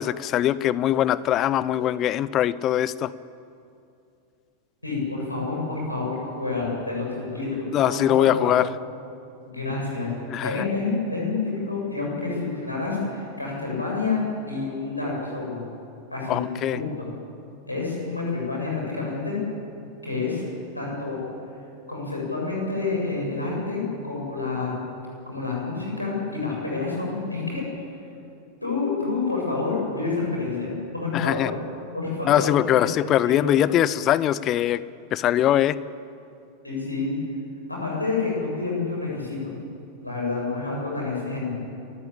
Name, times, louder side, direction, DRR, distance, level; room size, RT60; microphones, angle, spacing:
voice 1, 0.0-3.1 7.7-8.7 10.3-10.7 16.3-16.8 31.1-31.5 32.3-34.8 35.1-35.8, left 12 dB, 35° left, 18 dB, 0.7 m, -22 dB
voice 2, 4.8-8.5 9.5-10.1 10.4-14.2 14.5-15.6 16.1-16.4 16.7-17.1 17.7-19.4 20.0-20.4 20.7-21.2 21.9-24.7 25.3-27.6 28.6-31.5 31.9-32.8 33.4-33.5 36.6-37.2 37.7-39.5 40.0-41.5, left 3 dB, 85° left, -3 dB, 7.4 m, -28 dB
29.5 x 14.5 x 8.7 m, 2.5 s
figure-of-eight pair, 90°, 0 cm